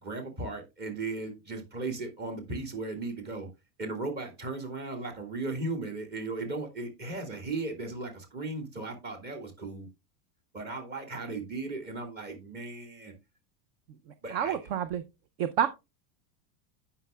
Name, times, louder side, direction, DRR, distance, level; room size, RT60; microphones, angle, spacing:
voice 1, 0.0-3.5 3.8-9.9 10.5-13.1 14.2-14.6, right 3 dB, 20° right, 5 dB, 1.8 m, -36 dB
voice 2, 14.3-15.0 15.4-15.7, right 9 dB, 45° right, 12 dB, 0.5 m, -28 dB
15.0 x 5.8 x 2.2 m, 0.24 s
supercardioid pair, 180°, 44 cm